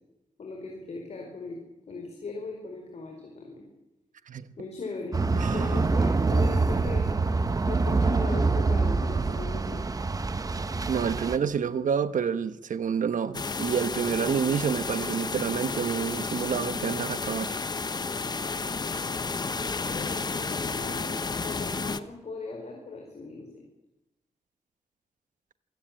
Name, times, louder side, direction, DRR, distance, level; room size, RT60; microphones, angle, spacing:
voice 1, 0.4-1.6 1.9-3.6 4.6-5.2 5.5-7.1 7.7-9.8 19.9-21.1 21.4-23.6, left 3 dB, 55° left, 4.9 m, -39 dB
sound 1, 5.1-11.4, right 3 dB, 30° right, 0.9 m, -25 dB
voice 2, 5.3-5.8 10.9-17.6, right 7 dB, 90° right, 1.1 m, -28 dB
sound 2, 13.3-22.0, left 4 dB, 35° left, 0.9 m, -32 dB
27.5 x 17.0 x 8.9 m
wide cardioid pair, 170°, 13 cm